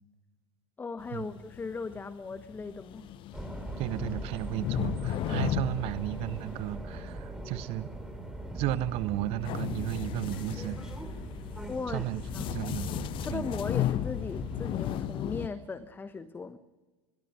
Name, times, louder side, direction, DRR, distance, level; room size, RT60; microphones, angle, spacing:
voice 1, 0.8-3.1 11.7-12.0 12.3-12.5 13.2-16.6, left 4 dB, 15° left, 14 dB, 1.0 m, -37 dB
sound 1, 1.0-7.0 9.4-15.5, left 13 dB, 35° left, 1.0 m, -35 dB
sound 2, 3.3-15.0, right 2 dB, 5° right, 3.4 m, -41 dB
voice 2, 3.8-7.9 8.5-10.8 11.9-13.5, right 15 dB, 40° right, 15 dB, 1.3 m, -34 dB
27.0 x 22.0 x 6.2 m, 1.3 s
figure-of-eight pair, 85°, 15 cm